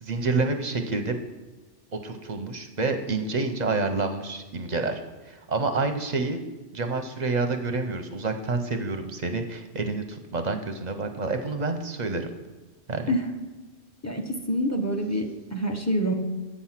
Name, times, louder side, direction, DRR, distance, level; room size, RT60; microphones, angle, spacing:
voice 1, 0.0-1.2 2.0-6.4 6.7-12.3 12.9-13.1, right 3 dB, 45° right, 6 dB, 0.7 m, -28 dB
voice 2, 14.0-16.1, equal, 15° left, 3 dB, 0.8 m, -26 dB
8.4 x 6.1 x 5.7 m, 1.2 s
omnidirectional pair, 1.2 m